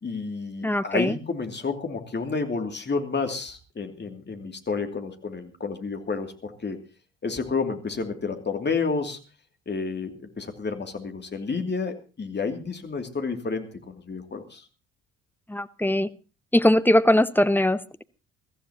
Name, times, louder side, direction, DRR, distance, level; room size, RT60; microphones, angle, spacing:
voice 1, 0.0-6.8 7.2-9.2 9.7-14.6, left 4 dB, 25° left, 5 dB, 2.7 m, -30 dB
voice 2, 0.6-1.2 15.5-16.1 16.5-18.0, left 1 dB, 5° left, 14 dB, 0.8 m, -21 dB
23.0 x 14.5 x 2.9 m, 0.33 s
hypercardioid pair, 55°, 38 cm